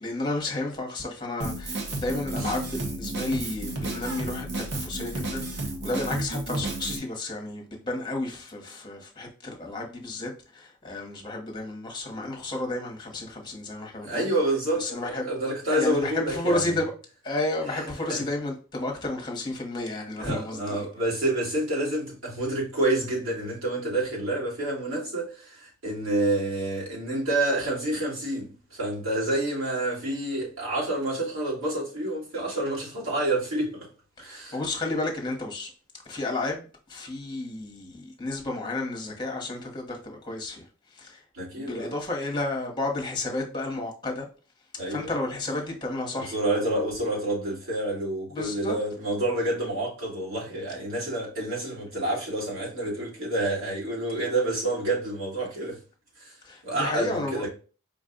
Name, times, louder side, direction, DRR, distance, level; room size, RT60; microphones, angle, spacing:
voice 1, 0.0-14.3 14.8-15.2 15.7-16.9 17.2-20.8 34.2-35.7 36.0-40.6 40.9-41.2 41.5-44.3 44.9-46.3 48.3-48.8 56.4-57.4, left 2 dB, 20° left, 1.1 m, -32 dB
Drum kit, 1.4-7.0, right 2 dB, 55° right, 0.9 m, -32 dB
voice 2, 14.0-16.8 18.1-18.2 20.2-33.9 34.2-34.6 41.3-41.9 44.8-45.1 46.2-55.8 56.2-56.3 56.6-57.5, right 1 dB, 70° right, 2.0 m, -28 dB
5.0 x 2.4 x 3.8 m
head